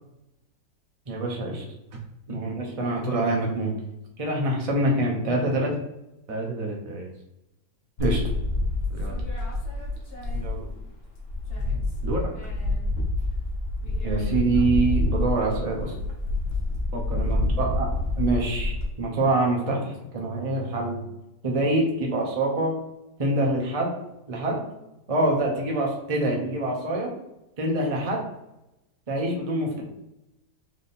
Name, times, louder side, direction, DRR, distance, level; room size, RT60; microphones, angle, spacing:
voice 1, 1.1-1.6 2.3-3.7 4.2-5.7 8.0-8.2 10.3-10.7 14.0-15.9 17.1-17.9 18.2-21.0 21.4-22.7 23.2-23.9 24.3-24.6 25.1-27.1 27.6-28.2 29.1-29.8, right 2 dB, 30° right, -1 dB, 0.7 m, -25 dB
voice 2, 6.3-7.1 8.9-9.2 12.0-12.3 16.9-17.3, right 2 dB, 55° right, 0 dB, 1.1 m, -32 dB
sound 1, 8.0-10.8 11.1-18.9, left 2 dB, 40° left, 1.1 m, -27 dB
3.6 x 3.6 x 4.0 m, 0.92 s
omnidirectional pair, 1.9 m